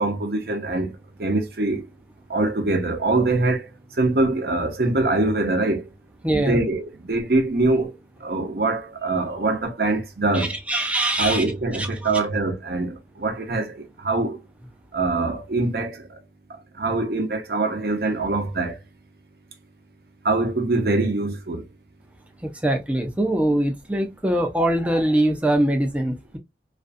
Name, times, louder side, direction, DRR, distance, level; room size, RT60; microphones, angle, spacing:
voice 1, 0.0-1.9 2.3-5.9 6.3-10.6 11.2-14.4 14.9-16.2 16.5-18.8 20.2-21.7, right 2 dB, 60° right, 0.7 m, -24 dB
voice 2, 6.2-6.6 10.3-11.4 11.8-12.1 22.4-26.4, right 1 dB, 10° right, 0.4 m, -23 dB
2.5 x 2.3 x 2.4 m
head